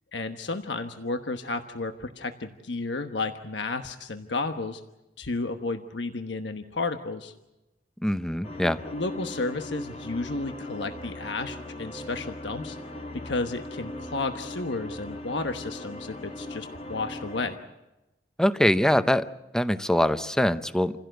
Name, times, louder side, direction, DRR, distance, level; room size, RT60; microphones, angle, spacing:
voice 1, 0.1-4.8 5.2-7.3 8.8-12.8 13.2-17.6, left 3 dB, 85° left, 7 dB, 1.2 m, -32 dB
voice 2, 8.0-8.8 18.4-19.3 19.5-20.9, equal, 5° left, 12 dB, 0.7 m, -23 dB
sound 1, 8.4-17.6, left 1 dB, 40° left, 2.4 m, -39 dB
28.5 x 16.5 x 7.9 m, 0.98 s
head